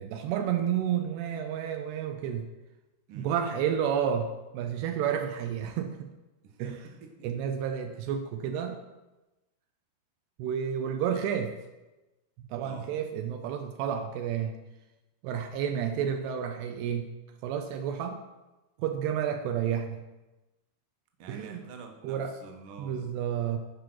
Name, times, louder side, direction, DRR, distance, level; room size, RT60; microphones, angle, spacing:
voice 1, 0.0-2.5 3.2-6.1 6.6-6.9 7.2-8.8 10.4-11.6 12.5-14.6 15.2-17.1 17.4-18.2 18.8-20.0 21.3-21.6 22.0-22.3 22.8-23.6, right 8 dB, 80° right, 5 dB, 2.7 m, -31 dB
voice 2, 6.4-7.4 12.6-12.9 21.2-23.1, right 5 dB, 65° right, 3 dB, 2.4 m, -48 dB
15.5 x 5.2 x 6.1 m, 1.1 s
omnidirectional pair, 4.8 m